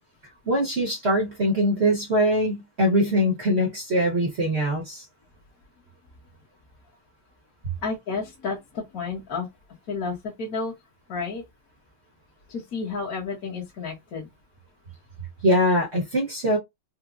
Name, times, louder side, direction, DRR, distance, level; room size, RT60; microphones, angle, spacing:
voice 1, 0.5-5.0 15.4-16.6, equal, 50° right, 0.8 m, -22 dB
voice 2, 7.8-9.5 9.9-10.7 11.1-11.4 12.5-14.3, left 4 dB, 50° left, 1.3 m, -31 dB
4.5 x 2.2 x 2.4 m
omnidirectional pair, 2.3 m